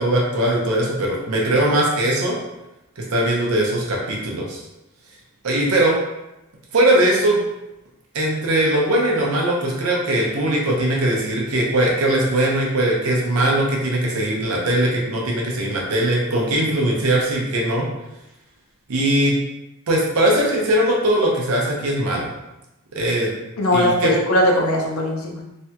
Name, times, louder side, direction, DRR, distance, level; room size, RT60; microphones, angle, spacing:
voice 1, 0.0-2.4 3.0-4.6 5.4-6.0 6.7-7.4 8.1-17.9 18.9-19.3 19.9-22.3 22.9-23.3 23.7-24.1, right 1 dB, 90° right, -2 dB, 0.7 m, -20 dB
voice 2, 23.6-25.4, left 1 dB, 85° left, -1 dB, 0.7 m, -19 dB
3.3 x 2.2 x 2.8 m, 0.93 s
head